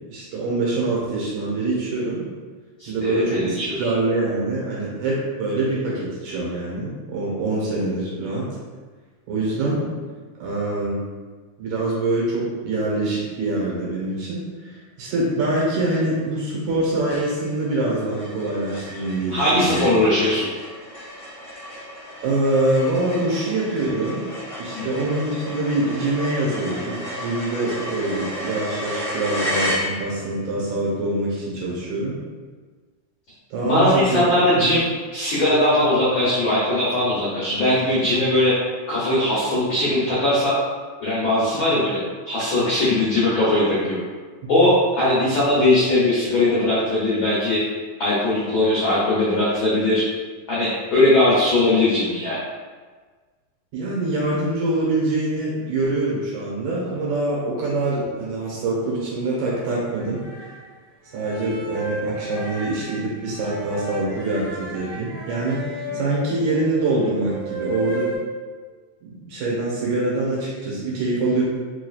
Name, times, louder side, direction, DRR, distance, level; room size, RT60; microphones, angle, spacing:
voice 1, 0.1-2.2 2.9-8.5 9.3-9.9 10.4-11.0 11.6-19.9 22.2-24.3 24.6-32.2 33.5-34.2 34.6-34.7 41.7-41.8 44.4-44.7 53.7-60.2 61.1-68.1 69.0-71.4, right 2 dB, 75° right, -5 dB, 2.4 m, -24 dB
voice 2, 2.8-3.9 19.3-20.5 24.7-24.9 33.6-38.5 38.9-40.6 41.0-44.0 44.5-47.6 48.0-50.0 50.5-52.4, left 1 dB, 75° left, -9 dB, 1.1 m, -20 dB
sound 1, 15.9-16.4 16.7-16.8 17.1-30.4, left 1 dB, 50° left, 0.8 m, -33 dB
sound 2, 59.9-60.6 61.2-68.2, right 1 dB, 50° right, 1.8 m, -33 dB
4.9 x 3.2 x 2.3 m, 1.4 s
omnidirectional pair, 3.4 m